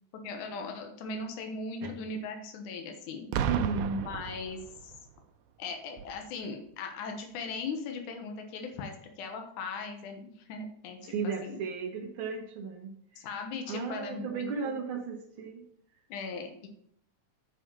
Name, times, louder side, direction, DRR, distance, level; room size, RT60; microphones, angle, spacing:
voice 1, 0.2-3.3 3.9-4.9 5.6-11.6 13.2-14.7 16.1-16.7, left 4 dB, 75° left, 4 dB, 2.6 m, -39 dB
Boom, 3.3-5.1 6.0-6.2, right 8 dB, 85° right, 2.0 m, -33 dB
voice 2, 3.4-4.0 11.0-13.3 13.7-15.6, right 5 dB, 55° right, -2 dB, 1.6 m, -35 dB
7.9 x 4.9 x 6.9 m, 0.67 s
omnidirectional pair, 3.6 m